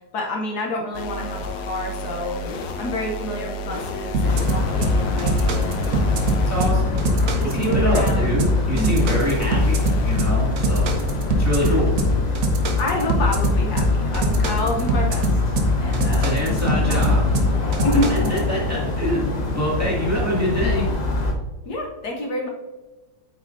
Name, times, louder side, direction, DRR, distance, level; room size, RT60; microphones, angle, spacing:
voice 1, 0.1-2.4 2.8-6.4 7.4-8.4 8.7-9.1 11.6-11.8 12.8-15.5 15.8-17.2 17.8-18.3 21.7-22.5, left 1 dB, 65° left, 0 dB, 1.4 m, -28 dB
sound 1, 0.9-12.2, left 2 dB, 90° left, 1.5 m, -32 dB
sound 2, 4.1-18.4, left 1 dB, 60° right, 1.3 m, -21 dB
sound 3, 4.2-21.3, left 2 dB, 45° left, 0.5 m, -26 dB
voice 2, 6.5-10.9 11.3-11.9 16.2-17.3 18.1-20.9, equal, 10° right, -5 dB, 1.9 m, -25 dB
8.6 x 5.9 x 2.6 m, 1.2 s
omnidirectional pair, 1.9 m